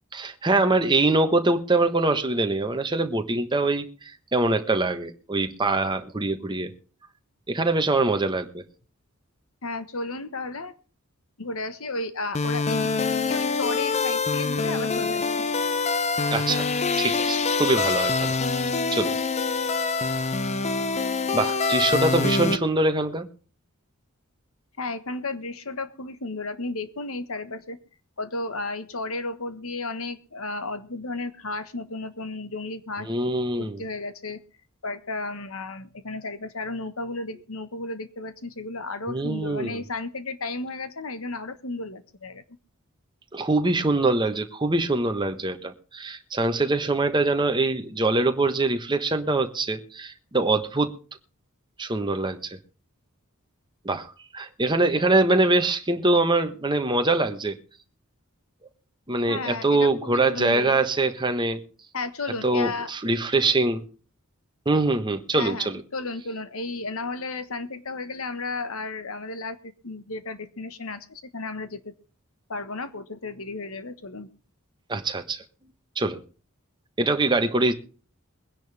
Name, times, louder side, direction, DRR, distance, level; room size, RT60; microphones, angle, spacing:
voice 1, 0.1-6.7 7.5-8.6 16.3-16.7 17.0-18.3 18.9-19.1 21.3-23.3 33.0-33.8 39.1-39.8 43.3-50.9 51.8-52.6 53.8-54.1 54.3-57.6 59.1-61.6 62.4-63.8 64.6-65.8 74.9-75.4 76.0-76.2 77.0-77.7, right 2 dB, 20° right, 6 dB, 1.3 m, -23 dB
voice 2, 9.6-10.7 11.4-15.3 24.8-27.8 28.2-33.1 33.6-34.4 34.8-42.4 59.3-60.8 61.9-62.9 65.4-69.6 69.8-71.9 72.5-74.3, left 3 dB, 70° left, 11 dB, 1.4 m, -33 dB
sound 1, 12.3-22.6, left 4 dB, 30° left, 0.7 m, -25 dB
22.0 x 10.5 x 3.5 m, 0.36 s
head